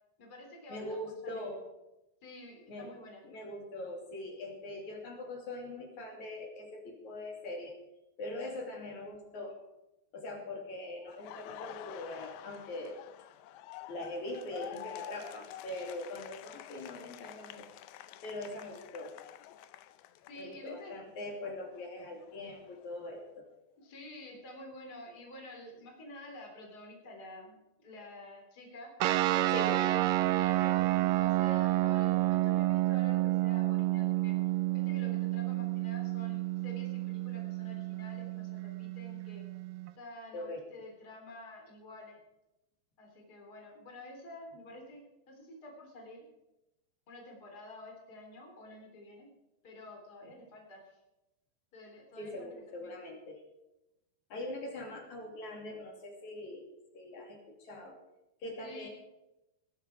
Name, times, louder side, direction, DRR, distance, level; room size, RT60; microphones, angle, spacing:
voice 1, 0.2-1.5 2.2-3.2 8.4-8.5 20.3-21.0 21.4-21.5 23.8-28.9 29.6-34.3 34.7-39.5 40.0-42.2 43.0-46.3 47.1-49.3 49.6-51.0 51.7-53.0 58.6-58.9, left 1 dB, 25° left, 1 dB, 3.5 m, -49 dB
voice 2, 0.7-1.6 2.7-2.9 3.2-7.8 8.2-9.6 10.1-13.0 13.9-17.7 18.2-19.2 20.4-23.5 29.3-29.8 30.2-30.4 40.3-40.6 50.2-50.3 52.2-53.4 54.3-58.0 58.4-58.9, left 1 dB, 50° left, 2 dB, 3.9 m, -42 dB
Laughter, 11.1-20.9 21.2-23.3, left 12 dB, 80° left, 2.5 m, -49 dB
sound 1, 29.0-39.9, right 17 dB, 80° right, 2.0 m, -30 dB
19.5 x 11.0 x 4.8 m, 0.93 s
omnidirectional pair, 4.6 m